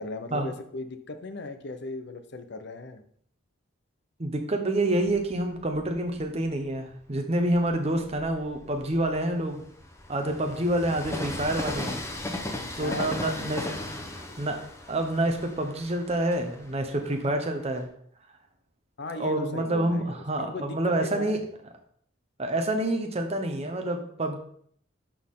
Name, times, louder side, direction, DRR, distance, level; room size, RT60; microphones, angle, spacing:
voice 1, 0.0-3.0 10.2-10.6 12.6-13.2 13.7-13.9 19.0-20.1 20.4-21.4, left 2 dB, 55° left, 8 dB, 0.8 m, -37 dB
voice 2, 4.2-9.6 10.1-12.0 12.8-14.6 14.9-17.9 19.2-21.4 22.4-24.4, right 1 dB, 30° right, 4 dB, 1.0 m, -28 dB
Train, 5.0-6.6 7.2-17.8, left 1 dB, 15° left, 0.8 m, -38 dB
11.5 x 4.4 x 3.7 m, 0.62 s
head